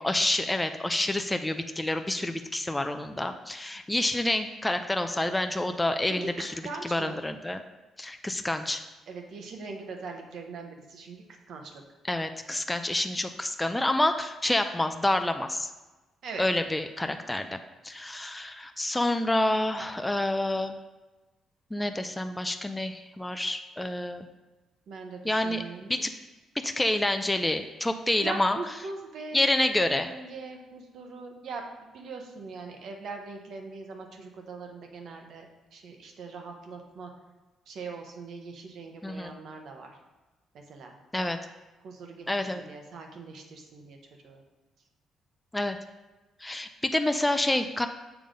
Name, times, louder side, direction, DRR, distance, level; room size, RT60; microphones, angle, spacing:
voice 1, 0.0-6.5 6.8-7.6 8.0-8.8 12.0-15.7 16.4-17.6 17.8-20.8 21.7-24.3 25.2-26.1 26.6-28.6 29.3-30.1 39.0-39.3 41.1-41.4 42.3-42.6 45.5-45.8 46.4-47.9, left 1 dB, 10° left, 7 dB, 0.4 m, -28 dB
voice 2, 6.2-7.2 9.1-11.7 16.2-16.4 24.9-26.1 28.2-29.4 29.8-35.5 35.7-37.1 37.7-39.9 40.7-40.9 41.8-42.3 42.5-44.0 44.2-44.4, right 4 dB, 70° right, 3 dB, 1.1 m, -41 dB
7.1 x 3.7 x 5.0 m, 1.1 s
cardioid pair, 90°, 0 cm